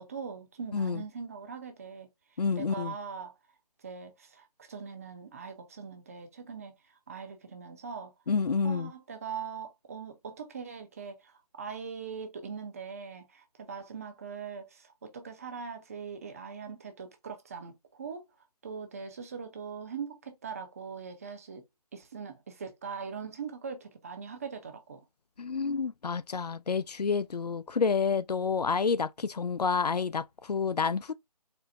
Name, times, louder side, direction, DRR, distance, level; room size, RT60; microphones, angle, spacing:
voice 1, 0.0-2.1 2.6-3.3 3.8-6.7 7.1-8.1 8.6-18.3 18.6-21.6 21.9-25.0, right 6 dB, 25° right, 0.6 m, -41 dB
voice 2, 0.7-1.0 2.4-2.9 8.3-8.9 25.4-31.1, left 5 dB, 85° left, 0.4 m, -29 dB
4.3 x 2.1 x 3.9 m
figure-of-eight pair, 150°, 20 cm